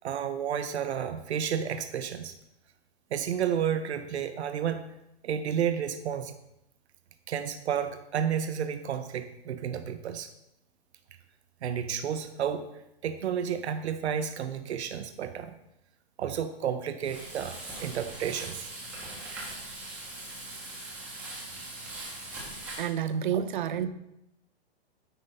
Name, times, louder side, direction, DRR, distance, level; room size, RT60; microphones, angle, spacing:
voice 1, 0.0-2.3 3.1-4.8 5.2-6.4 7.3-10.3 11.6-12.7 13.0-15.6 16.2-17.5 17.8-18.7 23.3-23.4, right 8 dB, 90° right, 8 dB, 0.8 m, -31 dB
Frying (food), 17.0-22.9, right 2 dB, 5° right, 1.0 m, -41 dB
voice 2, 22.8-23.9, right 9 dB, 50° right, 12 dB, 0.6 m, -29 dB
9.2 x 5.1 x 4.0 m, 0.85 s
hypercardioid pair, 170°, 32 cm